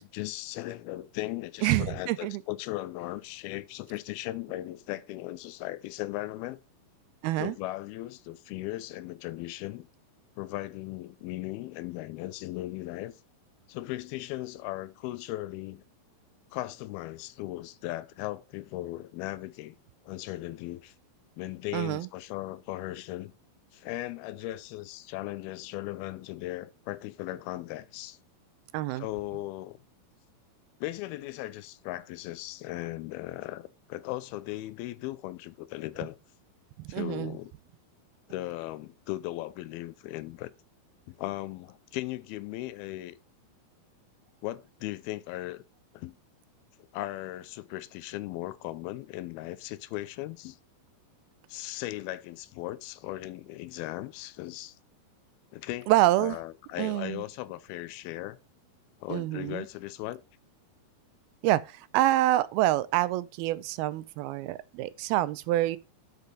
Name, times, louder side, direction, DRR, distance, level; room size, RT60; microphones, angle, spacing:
voice 1, 0.0-6.6 7.4-9.9 10.4-13.1 13.7-15.8 16.5-19.8 20.1-20.9 21.4-23.3 23.7-28.2 29.0-29.8 30.8-36.2 36.9-37.5 38.3-40.5 41.1-43.2 44.4-45.6 45.9-46.2 46.8-50.6 51.5-54.8 55.5-55.9 56.2-58.4 59.0-60.2, left 17 dB, 85° left, 2.5 m, -37 dB
voice 2, 1.6-2.4 7.2-7.5 21.7-22.1 28.7-29.1 36.8-37.4 55.9-56.4 56.8-57.2 59.1-59.7 61.4-65.8, right 15 dB, 85° right, 2.5 m, -27 dB
8.3 x 5.1 x 5.3 m
omnidirectional pair, 4.4 m